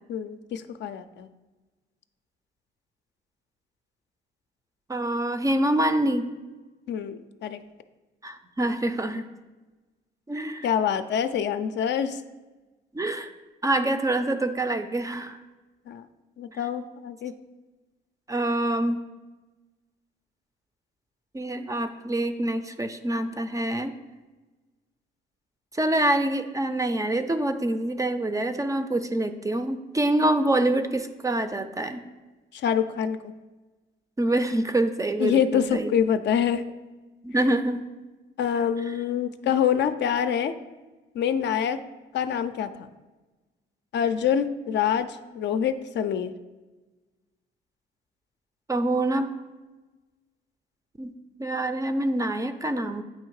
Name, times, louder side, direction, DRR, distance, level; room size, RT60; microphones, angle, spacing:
voice 1, 0.1-1.3 6.9-7.6 10.6-12.2 15.9-16.0 16.4-17.3 32.5-33.3 35.2-36.7 38.4-40.5 41.1-41.8 42.1-42.9 43.9-46.3, left 8 dB, 65° left, 10 dB, 0.4 m, -26 dB
voice 2, 4.9-6.3 8.2-9.2 10.3-10.7 12.9-13.3 13.6-15.4 16.5-16.6 18.3-19.0 21.3-23.9 25.7-32.0 34.2-35.9 37.2-37.9 38.9-39.0 48.7-49.3 51.0-51.1 51.4-53.0, right 1 dB, 15° right, 9 dB, 0.4 m, -26 dB
8.3 x 2.8 x 4.7 m, 1.2 s
cardioid pair, 90°, 20 cm